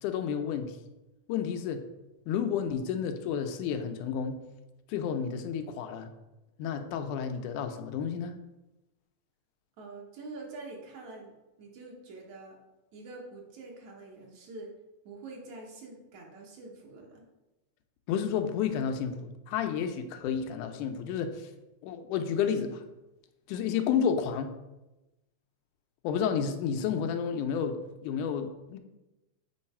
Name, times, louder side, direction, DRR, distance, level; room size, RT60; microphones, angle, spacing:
voice 1, 0.0-0.8 1.3-1.8 2.3-4.4 4.9-6.1 6.6-8.3 18.1-21.5 21.8-22.8 23.5-24.5 26.0-28.8, left 7 dB, 85° left, 7 dB, 2.2 m, -31 dB
voice 2, 9.8-11.3 11.6-12.6 12.9-14.7 15.0-17.2, right 3 dB, 65° right, 0 dB, 2.5 m, -45 dB
8.1 x 4.6 x 4.3 m, 1.0 s
omnidirectional pair, 3.5 m